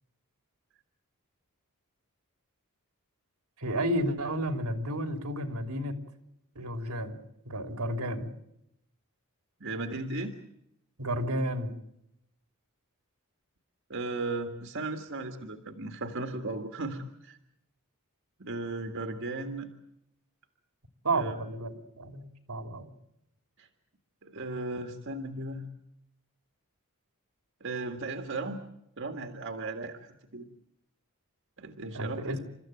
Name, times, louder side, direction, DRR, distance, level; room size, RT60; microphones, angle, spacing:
voice 1, 3.6-5.9 6.5-7.2 7.4-8.3 11.0-11.8 21.0-22.9 31.9-32.5, right 1 dB, 90° right, 7 dB, 3.2 m, -32 dB
voice 2, 9.6-10.4 13.9-17.4 18.4-19.7 21.1-21.3 23.6-23.7 24.2-25.7 27.6-28.6 29.0-30.4 31.6-32.4, right 2 dB, 60° right, 5 dB, 1.8 m, -36 dB
29.5 x 14.5 x 9.1 m, 0.80 s
head